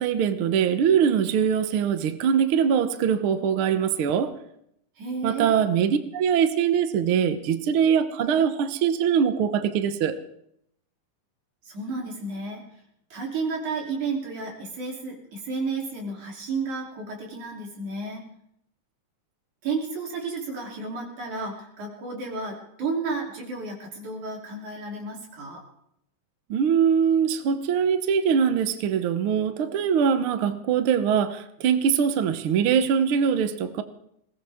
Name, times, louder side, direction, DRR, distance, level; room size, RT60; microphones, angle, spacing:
voice 1, 0.0-4.3 5.2-10.2 26.5-33.8, right 7 dB, 60° right, 9 dB, 1.5 m, -22 dB
voice 2, 5.0-5.5 11.7-12.6 13.1-18.2 19.6-25.6, right 4 dB, 85° right, -1 dB, 4.7 m, -32 dB
21.0 x 18.5 x 3.6 m, 0.75 s
omnidirectional pair, 3.3 m